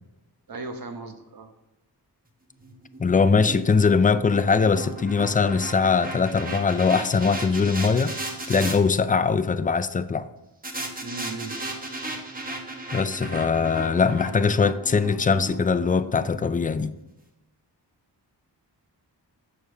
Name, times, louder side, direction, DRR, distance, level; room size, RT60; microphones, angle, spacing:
voice 1, 0.5-1.5 11.0-11.6, right 3 dB, 60° right, 1.0 m, -36 dB
sound 1, 2.6-8.8 10.6-16.9, right 2 dB, 20° right, 1.1 m, -36 dB
voice 2, 3.0-8.1 8.5-10.2 12.9-16.9, left 5 dB, 20° left, 0.3 m, -21 dB
6.9 x 6.5 x 3.4 m
wide cardioid pair, 95°, 40 cm